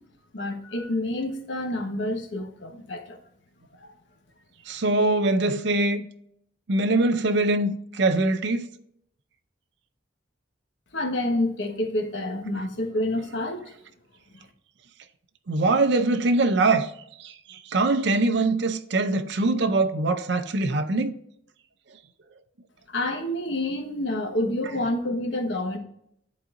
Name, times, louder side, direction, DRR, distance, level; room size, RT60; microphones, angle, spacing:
voice 1, 0.3-3.2 3.8-3.9 10.9-13.7 22.9-25.8, left 1 dB, 65° left, 1.2 m, -28 dB
voice 2, 4.7-6.0 6.7-8.7 15.5-16.9 17.2-21.1, right 2 dB, 60° right, 0.5 m, -23 dB
11.5 x 4.0 x 2.5 m
head